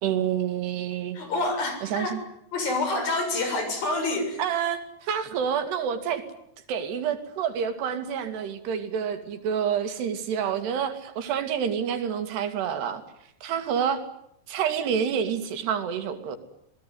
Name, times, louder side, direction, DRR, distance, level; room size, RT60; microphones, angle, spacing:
voice 1, 0.0-1.2 1.8-2.2 4.4-6.2 6.7-13.0 13.4-14.0 14.5-16.4, right 8 dB, 90° right, 8 dB, 4.3 m, -28 dB
voice 2, 1.2-2.1 2.5-4.4, left 2 dB, 60° left, 6 dB, 8.4 m, -27 dB
28.0 x 19.0 x 9.5 m, 0.75 s
omnidirectional pair, 4.6 m